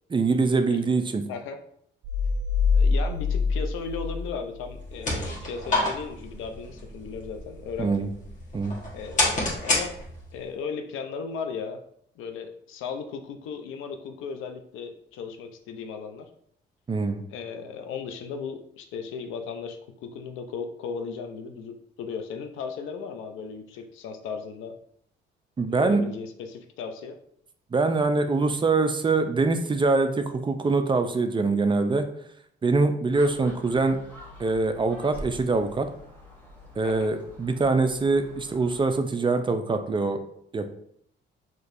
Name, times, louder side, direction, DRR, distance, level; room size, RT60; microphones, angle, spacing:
voice 1, 0.1-1.2 7.8-8.1 8.5-8.8 16.9-17.2 25.6-26.0 27.7-32.0 32.6-34.0 34.4-35.9 36.8-40.2 40.5-40.7, right 3 dB, 25° right, 7 dB, 0.4 m, -24 dB
sound 1, 2.0-4.9, left 5 dB, 75° right, 0.6 m, -25 dB
voice 2, 2.7-8.1 8.9-9.9 10.3-11.8 12.2-16.3 17.3-24.7 25.7-27.2 36.8-37.1, left 5 dB, 90° left, 6 dB, 0.5 m, -36 dB
sound 2, 4.7-10.4, left 2 dB, 40° left, 1.3 m, -30 dB
Gull seagull, 33.1-38.9, equal, 10° left, 1.1 m, -46 dB
4.3 x 3.0 x 2.5 m, 0.69 s
cardioid pair, 90°, 20 cm